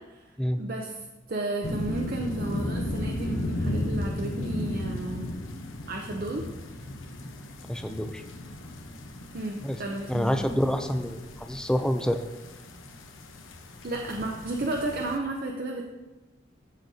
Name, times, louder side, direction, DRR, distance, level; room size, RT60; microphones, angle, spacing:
voice 1, 0.6-5.3 5.9-6.4 9.3-10.5 13.8-15.9, right 2 dB, 45° right, 0 dB, 0.6 m, -33 dB
sound 1, 1.6-15.2, left 1 dB, 75° left, 0.9 m, -35 dB
voice 2, 7.7-8.2 9.6-9.8 10.1-12.2, equal, 5° left, 7 dB, 0.3 m, -27 dB
13.5 x 5.1 x 2.7 m, 1.1 s
head